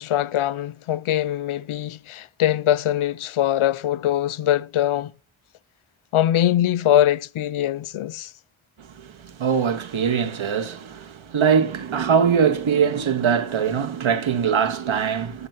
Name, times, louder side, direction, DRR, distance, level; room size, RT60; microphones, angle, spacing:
voice 1, 0.0-5.1 6.1-8.3, left 12 dB, 85° left, 0.7 m, -22 dB
voice 2, 8.8-15.5, right 7 dB, 75° right, 1.9 m, -22 dB
14.0 x 6.2 x 7.7 m
cardioid pair, 75°, 48 cm